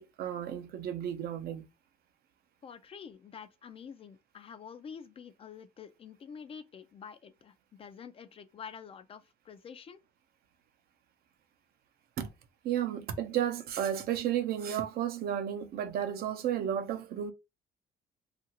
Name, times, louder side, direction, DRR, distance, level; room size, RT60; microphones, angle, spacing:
voice 1, 0.0-1.7 12.2-12.3 12.6-17.3, right 10 dB, 65° right, 0.5 m, -33 dB
voice 2, 2.6-10.0, left 7 dB, 35° left, 0.3 m, -48 dB
2.9 x 2.5 x 2.8 m
cardioid pair, 110°, 17 cm